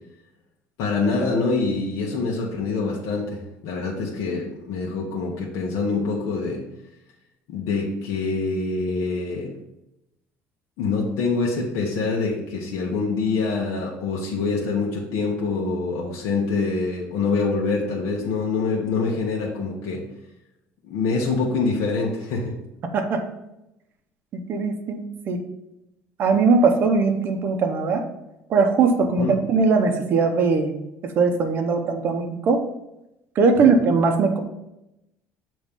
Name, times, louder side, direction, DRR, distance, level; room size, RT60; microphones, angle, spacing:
voice 1, 0.8-6.6 7.5-9.5 10.8-20.0 20.8-22.5 29.2-29.3 33.6-33.7, left 4 dB, 70° left, -3 dB, 1.1 m, -25 dB
voice 2, 22.8-23.3 24.3-25.4 26.2-28.0 28.5-30.8 31.0-32.6 33.4-34.4, right 4 dB, 40° right, 4 dB, 0.8 m, -20 dB
7.2 x 3.1 x 5.2 m, 0.89 s
cardioid pair, 155°, 6 cm